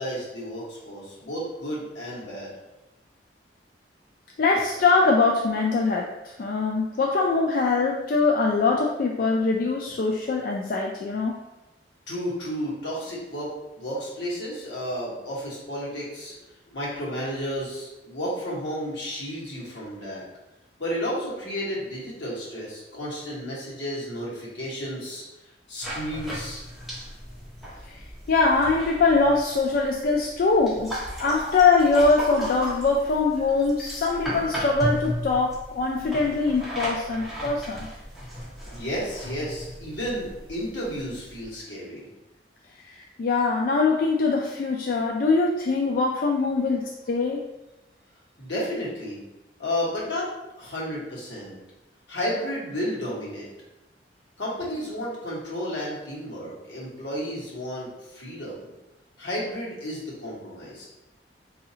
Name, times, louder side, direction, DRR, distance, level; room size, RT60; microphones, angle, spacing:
voice 1, 0.0-2.6 12.1-16.4 16.7-20.2 20.8-25.2 25.7-26.6 38.7-42.1 48.4-49.2 49.6-50.3 50.5-51.6 52.1-53.5 54.4-58.7 59.2-60.9, equal, 80° left, -5 dB, 1.3 m, -32 dB
voice 2, 4.4-11.3 27.9-28.0 28.3-30.9 31.2-37.9 42.9-47.4, left 3 dB, 50° left, 0 dB, 0.3 m, -23 dB
sound 1, 25.8-41.5, equal, ahead, 0.8 m, -36 dB
4.0 x 2.7 x 2.7 m, 0.96 s
head